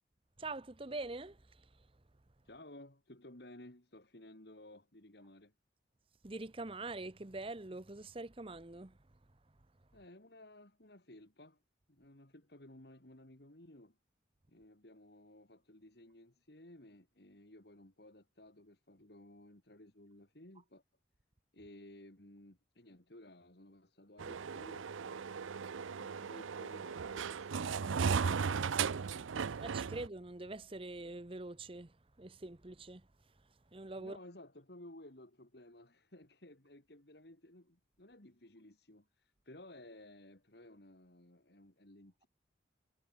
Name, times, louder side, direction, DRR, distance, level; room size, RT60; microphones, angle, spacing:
voice 1, 0.4-1.9 6.2-9.0 29.6-33.1 33.7-34.2, right 2 dB, 30° right, 0.9 m, -44 dB
voice 2, 2.4-5.5 9.9-11.6 11.9-14.0 14.5-20.8 21.5-28.4 34.0-42.3, left 1 dB, 55° left, 2.5 m, -56 dB
sound 1, 24.2-30.1, right 6 dB, 85° right, 0.5 m, -36 dB
head